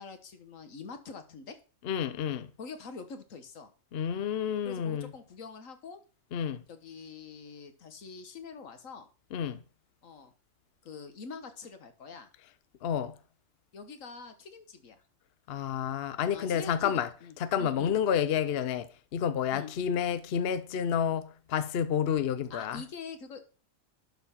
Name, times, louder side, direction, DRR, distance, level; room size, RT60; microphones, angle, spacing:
voice 1, 0.0-1.6 2.6-3.7 4.6-6.0 6.7-9.1 10.0-10.3 10.8-12.3 13.7-15.0 16.3-17.9 19.5-19.7 22.5-23.4, left 5 dB, 80° left, 1.6 m, -45 dB
voice 2, 1.8-2.5 3.9-5.1 6.3-6.6 9.3-9.6 12.8-13.2 15.5-17.1 17.4-22.8, left 8 dB, 60° left, 0.8 m, -30 dB
11.5 x 4.2 x 5.7 m
omnidirectional pair, 1.3 m